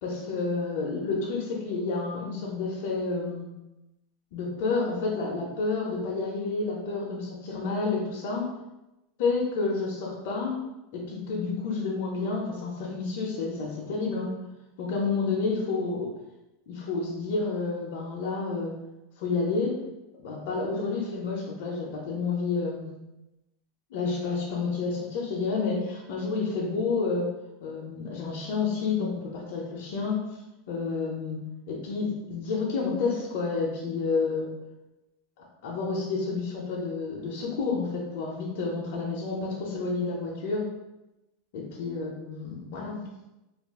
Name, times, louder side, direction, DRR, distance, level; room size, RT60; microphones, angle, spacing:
voice 1, 0.0-3.5 4.3-8.4 9.2-10.6 10.9-14.3 14.8-16.1 16.7-18.7 19.2-19.7 20.2-22.9 23.9-27.2 27.6-30.2 30.7-31.4 31.7-34.5 35.6-40.7 41.5-43.0, left 4 dB, 50° left, -4 dB, 0.5 m, -30 dB
2.4 x 2.3 x 3.4 m, 0.96 s
supercardioid pair, 175°, 0 cm